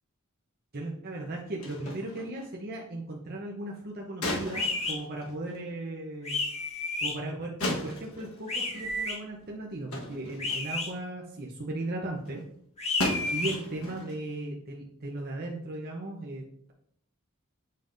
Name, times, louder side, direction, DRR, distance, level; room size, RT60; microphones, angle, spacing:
voice 1, 0.7-6.5 7.0-12.4 13.3-16.4, right 2 dB, 45° right, -1 dB, 0.8 m, -37 dB
sound 1, 1.6-2.5 4.2-5.7 6.5-6.6 7.6-9.0 9.3-9.5 9.9-10.9 11.3-11.4 11.8-11.9 12.2-12.4 13.0-14.2, left 1 dB, 65° left, 1.3 m, -36 dB
sound 2, 4.5-4.9 6.2-7.1 8.5-9.1 10.4-10.9 12.8-13.5, left 2 dB, 30° left, 1.5 m, -31 dB
7.5 x 5.4 x 2.6 m, 0.67 s
head